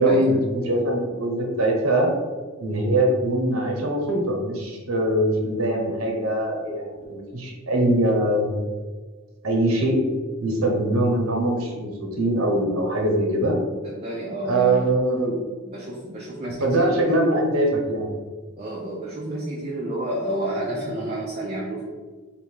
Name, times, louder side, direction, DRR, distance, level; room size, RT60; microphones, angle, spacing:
voice 1, 0.0-2.1 2.6-8.5 9.4-10.0 10.4-13.5 14.4-15.4 16.6-18.1, right 1 dB, 90° right, 1 dB, 1.0 m, -22 dB
voice 2, 13.8-14.8 15.6-17.1 18.6-21.8, right 1 dB, 30° right, -4 dB, 0.5 m, -30 dB
3.5 x 2.8 x 4.5 m, 1.4 s
head